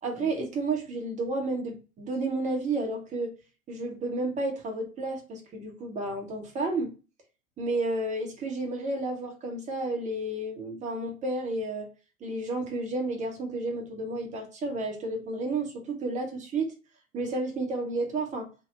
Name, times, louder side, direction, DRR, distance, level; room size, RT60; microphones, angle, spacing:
voice 1, 0.0-3.3 3.7-6.9 7.6-11.9 12.2-16.7 17.1-18.5, right 2 dB, 15° right, 1 dB, 0.9 m, -31 dB
3.7 x 2.2 x 3.8 m, 0.34 s
figure-of-eight pair, 90°, 43 cm